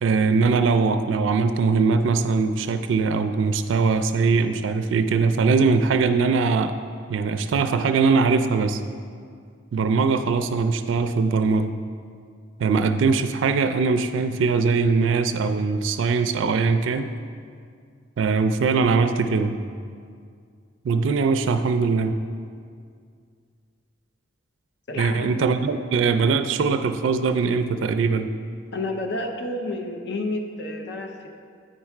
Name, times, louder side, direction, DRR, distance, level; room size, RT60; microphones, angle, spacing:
voice 1, 0.0-6.7 7.1-8.8 9.7-11.7 12.6-17.1 18.2-19.6 20.8-22.1 25.0-28.3, right 4 dB, 80° right, 9 dB, 0.3 m, -21 dB
voice 2, 24.9-25.3 28.7-31.3, left 2 dB, 65° left, 4 dB, 0.7 m, -30 dB
9.0 x 4.7 x 4.5 m, 2.2 s
head